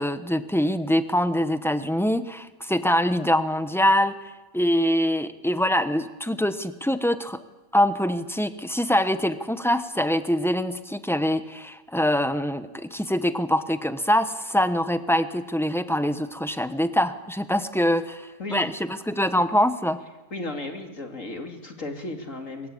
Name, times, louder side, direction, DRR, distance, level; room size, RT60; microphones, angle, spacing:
voice 1, 0.0-4.1 4.5-7.4 7.7-20.0, equal, ahead, 11 dB, 0.8 m, -24 dB
voice 2, 20.3-22.7, left 2 dB, 55° left, 4 dB, 3.0 m, -34 dB
23.5 x 22.5 x 8.6 m, 1.1 s
omnidirectional pair, 1.6 m